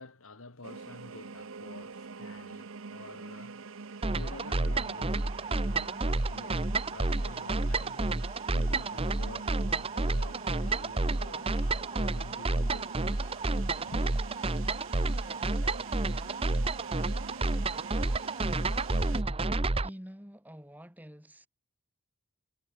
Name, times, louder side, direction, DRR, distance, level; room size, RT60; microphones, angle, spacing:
voice 1, 0.0-8.1 8.5-9.5 9.8-13.4 13.8-14.1, left 2 dB, 70° left, 2.1 m, -49 dB
sound 1, 0.6-19.2, right 4 dB, 65° right, 0.8 m, -45 dB
sound 2, 4.0-19.9, right 2 dB, 25° right, 0.8 m, -30 dB
voice 2, 19.8-21.5, equal, 10° right, 2.9 m, -47 dB
head